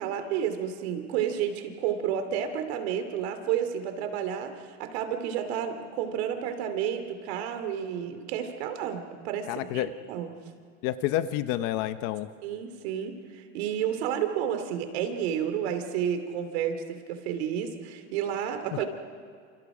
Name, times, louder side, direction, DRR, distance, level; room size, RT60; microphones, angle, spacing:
voice 1, 0.0-10.3 12.4-18.9, right 9 dB, 65° right, 8 dB, 2.9 m, -31 dB
voice 2, 9.5-9.9 10.8-12.3, left 13 dB, 40° left, 12 dB, 0.8 m, -29 dB
29.5 x 28.5 x 5.0 m, 2.2 s
supercardioid pair, 175°, 34 cm